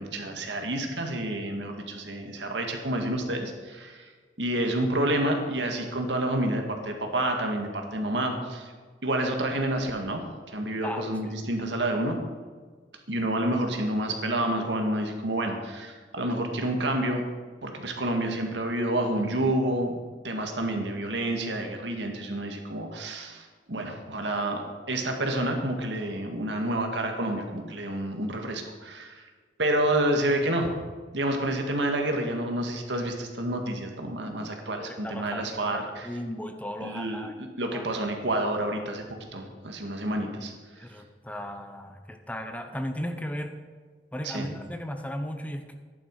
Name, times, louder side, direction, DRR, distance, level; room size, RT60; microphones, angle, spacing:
voice 1, 0.0-4.1 4.4-8.7 9.0-12.2 13.1-17.2 17.6-20.0 20.2-29.2 29.6-30.7 31.1-36.1 36.8-40.5 44.2-44.5, right 1 dB, 90° right, 3 dB, 2.0 m, -29 dB
voice 2, 34.8-37.3 37.7-38.1 40.8-43.6 44.1-45.7, equal, 10° left, 6 dB, 0.9 m, -36 dB
13.5 x 10.5 x 4.8 m, 1.5 s
head